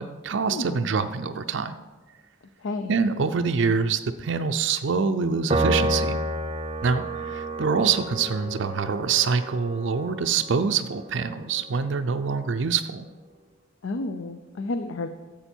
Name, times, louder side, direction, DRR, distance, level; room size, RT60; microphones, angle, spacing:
voice 1, 0.0-1.7 2.9-6.2 6.8-13.1, right 5 dB, 60° right, 8 dB, 0.4 m, -25 dB
voice 2, 0.5-0.9 2.6-2.9 13.8-15.1, left 2 dB, 65° left, 8 dB, 0.5 m, -31 dB
Piano, 5.5-12.1, right 1 dB, 25° right, 0.7 m, -30 dB
11.0 x 7.6 x 4.4 m, 1.3 s
head